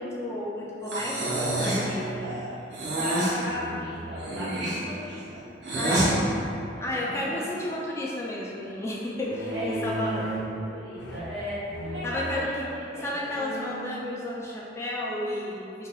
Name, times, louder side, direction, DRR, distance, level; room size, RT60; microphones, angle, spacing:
voice 1, 0.0-1.9 5.8-6.2 6.8-10.3 12.0-12.7 13.0-15.9, left 1 dB, 15° left, -5 dB, 0.3 m, -32 dB
sound 1, 0.9-2.3 3.5-4.2 5.7-6.3 9.2-10.6 10.9-11.4 11.7-12.1 12.7-12.8 13.2-13.9, right 1 dB, 85° left, 0.6 m, -35 dB
Breathing, 0.9-1.9 2.7-3.4 4.2-6.1, right 1 dB, 70° right, 0.6 m, -28 dB
voice 2, 1.1-5.4 6.0-6.3 6.7-7.4 9.5-10.1 10.5-13.2, equal, 85° right, -8 dB, 1.0 m, -37 dB
2.6 x 2.3 x 4.0 m, 2.6 s
head